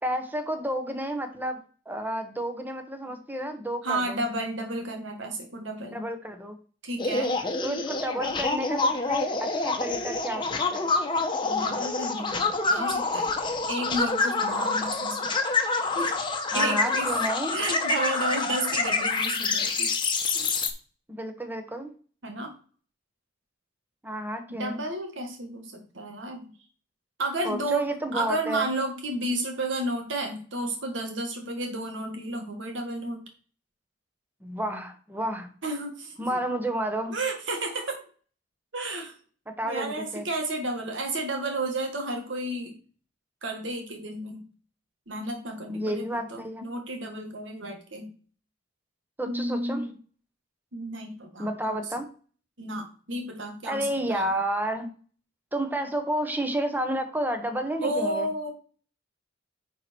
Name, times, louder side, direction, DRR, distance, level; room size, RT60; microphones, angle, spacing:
voice 1, 0.0-4.2 5.9-6.5 7.6-10.9 14.5-14.8 16.5-17.6 21.1-21.9 24.0-24.8 27.4-28.7 34.4-35.5 36.2-37.1 39.5-40.3 45.7-46.6 49.2-49.8 51.4-52.1 53.6-54.9 55.5-58.3, right 1 dB, 10° right, 6 dB, 1.2 m, -31 dB
voice 2, 3.8-6.0 6.8-7.3 11.4-13.3 13.7-15.3 15.9-16.2 16.5-17.1 17.5-19.9 20.3-20.5 22.2-22.5 24.5-26.5 27.2-33.2 35.6-36.4 37.1-38.0 38.7-39.1 39.6-42.8 43.4-44.4 45.1-48.1 49.3-49.9 50.7-51.8 52.6-54.3 57.8-58.5, right 1 dB, 75° right, 3 dB, 1.8 m, -32 dB
sound 1, 7.0-20.7, left 3 dB, 25° left, 1.2 m, -27 dB
9.8 x 4.5 x 4.5 m, 0.40 s
head